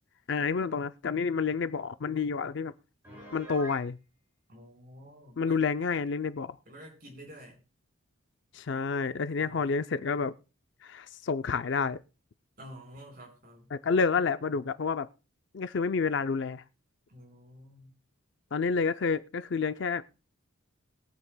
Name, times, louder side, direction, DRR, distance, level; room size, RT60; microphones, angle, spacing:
voice 1, 0.3-2.7 3.3-4.0 5.4-6.6 8.5-10.4 10.8-12.0 13.7-15.1 15.5-16.6 18.5-20.0, left 5 dB, 55° left, 0.4 m, -29 dB
Piano, 3.0-3.9, right 1 dB, 10° right, 6.1 m, -45 dB
voice 2, 4.5-5.6 6.7-7.6 9.4-9.6 12.6-13.7 17.1-17.9, equal, 45° right, 4.4 m, -50 dB
22.0 x 8.2 x 2.2 m
head